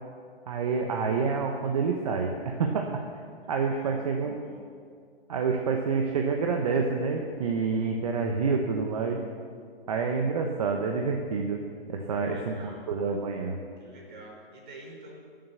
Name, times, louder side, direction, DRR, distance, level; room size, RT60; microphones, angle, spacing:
voice 1, 0.5-3.0 3.5-4.4 5.3-9.2 9.9-12.5 12.9-13.6, right 5 dB, 35° right, 2 dB, 1.0 m, -28 dB
voice 2, 3.4-4.7 12.0-12.9 13.8-15.2, right 2 dB, 50° right, -1 dB, 4.3 m, -49 dB
18.5 x 7.7 x 7.0 m, 2.2 s
hypercardioid pair, 170°, 30 cm